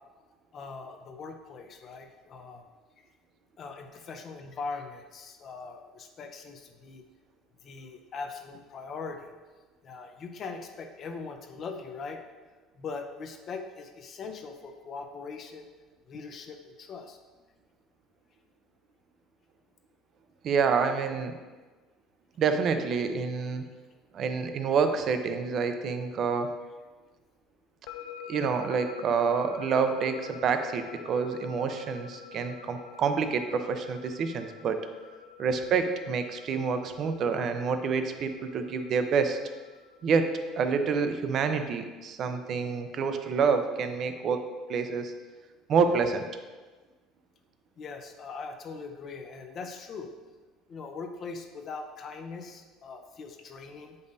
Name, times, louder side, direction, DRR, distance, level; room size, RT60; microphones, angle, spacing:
voice 1, 0.5-2.7 3.6-7.0 7.6-9.3 9.8-12.2 12.8-15.7 16.1-17.2 47.8-50.1 50.7-54.0, left 4 dB, 30° left, 5 dB, 0.6 m, -41 dB
voice 2, 20.4-21.4 22.4-23.6 24.1-26.5 28.3-34.8 35.4-39.4 40.0-45.1 45.7-46.3, right 5 dB, 35° right, 7 dB, 0.5 m, -28 dB
sound 1, 27.9-40.9, left 7 dB, 80° left, 0.4 m, -47 dB
8.1 x 5.3 x 2.7 m, 1.3 s
cardioid pair, 165°, 0 cm